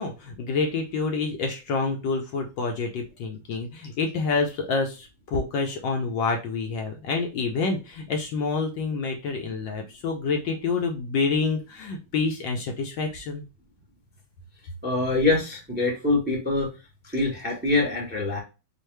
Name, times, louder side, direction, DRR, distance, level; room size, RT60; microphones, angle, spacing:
voice 1, 0.0-13.4, left 4 dB, 70° left, 3 dB, 1.2 m, -27 dB
voice 2, 14.8-16.7 17.0-18.4, left 2 dB, 10° right, 0 dB, 0.6 m, -24 dB
4.5 x 2.4 x 3.2 m, 0.29 s
omnidirectional pair, 2.4 m